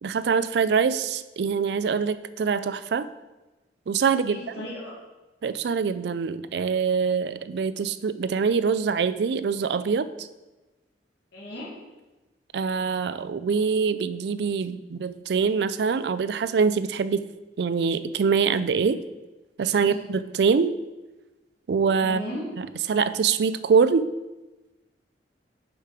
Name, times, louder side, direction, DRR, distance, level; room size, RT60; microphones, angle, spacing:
voice 1, 0.0-3.1 3.9-4.4 5.4-10.1 12.5-17.3 17.6-19.0 19.6-20.7 21.7-22.3 22.9-24.1, right 5 dB, 70° right, 14 dB, 0.4 m, -24 dB
voice 2, 4.2-4.9 11.3-11.7 19.8-20.0 22.0-22.4, left 1 dB, 75° left, -8 dB, 2.0 m, -36 dB
7.1 x 5.7 x 4.9 m, 1.1 s
head